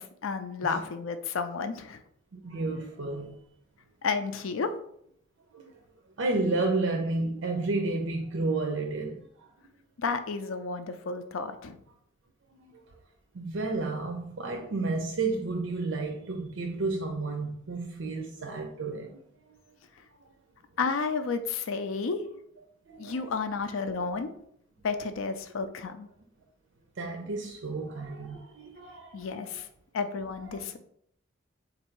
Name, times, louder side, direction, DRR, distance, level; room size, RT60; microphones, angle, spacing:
voice 1, 0.0-2.0 4.0-4.7 10.0-11.8 20.8-22.2 23.0-24.3 24.8-26.1 29.1-29.7 29.9-30.8, left 4 dB, 90° left, 0.4 m, -31 dB
voice 2, 2.3-3.4 5.5-5.7 6.2-9.5 12.6-12.8 13.3-19.2 20.2-20.3 22.9-23.4 27.0-29.6 30.4-30.6, right 3 dB, 75° right, 0.5 m, -32 dB
3.9 x 2.6 x 4.4 m
head